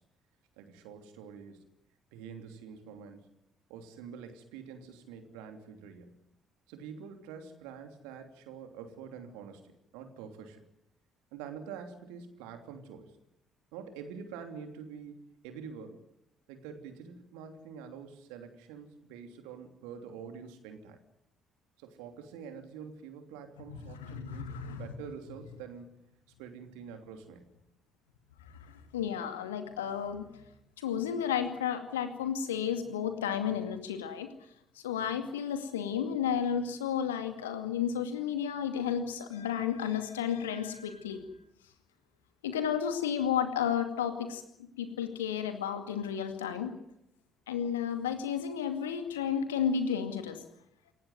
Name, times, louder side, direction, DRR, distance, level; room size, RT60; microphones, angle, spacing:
voice 1, 0.6-1.6 2.1-3.3 3.7-6.1 6.7-9.6 9.9-10.6 11.3-13.2 13.7-16.0 16.5-21.0 21.8-26.0 26.4-27.4, right 6 dB, 70° right, 6 dB, 3.1 m, -46 dB
voice 2, 23.8-24.9 28.6-30.4 30.8-34.3 34.8-41.2 42.4-44.4 44.8-46.7 47.5-50.4, left 8 dB, 80° left, 8 dB, 2.2 m, -32 dB
27.5 x 15.5 x 9.3 m, 0.80 s
figure-of-eight pair, 45°, 0 cm